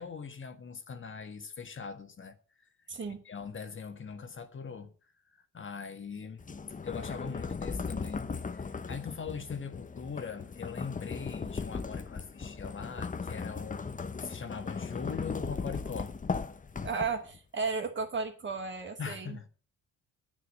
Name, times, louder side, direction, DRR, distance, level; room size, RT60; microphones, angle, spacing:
voice 1, 0.0-2.4 3.3-4.9 5.3-6.4 6.8-16.1 19.0-19.5, left 6 dB, 40° left, 1.8 m, -41 dB
sound 1, 6.4-17.4, left 5 dB, 25° left, 1.0 m, -38 dB
voice 2, 16.8-19.4, right 4 dB, 40° right, 2.5 m, -34 dB
10.0 x 9.3 x 6.5 m
cardioid pair, 90°, 30 cm